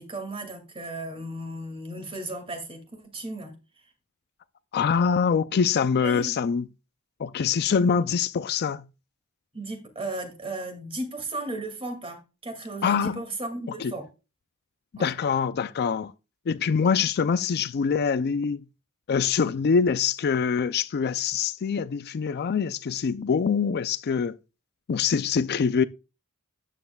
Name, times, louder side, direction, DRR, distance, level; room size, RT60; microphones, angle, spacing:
voice 1, 0.0-3.5 6.0-6.3 9.5-14.1 15.0-15.1, right 2 dB, 25° right, 2.2 m, -35 dB
voice 2, 4.7-6.7 7.2-8.8 12.8-13.2 13.8-13.9 14.9-16.1 16.5-18.6 19.1-24.4 24.9-25.8, left 6 dB, 50° left, 0.4 m, -24 dB
13.0 x 9.2 x 2.3 m
head